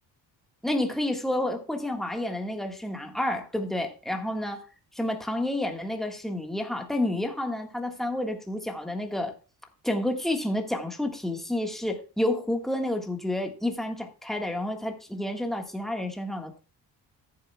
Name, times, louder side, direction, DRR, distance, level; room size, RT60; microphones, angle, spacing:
voice 1, 0.6-4.6 4.9-9.3 9.8-16.6, left 1 dB, ahead, 1.5 m, -30 dB
14.0 x 7.6 x 2.3 m
cardioid pair, 120°, 39 cm